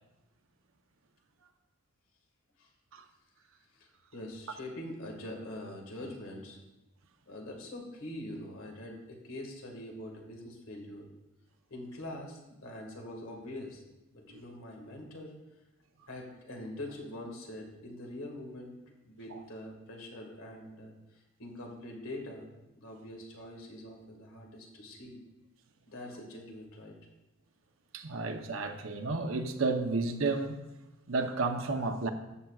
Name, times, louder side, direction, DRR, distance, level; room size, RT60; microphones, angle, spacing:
voice 1, 3.7-6.6 7.3-11.1 11.7-13.8 14.1-15.3 16.1-18.7 19.0-22.5 22.7-25.2 25.9-27.0, left 1 dB, 90° left, 1.9 m, -44 dB
voice 2, 27.9-30.6 31.1-32.1, right 3 dB, 80° right, 0.8 m, -32 dB
13.5 x 8.6 x 2.4 m
head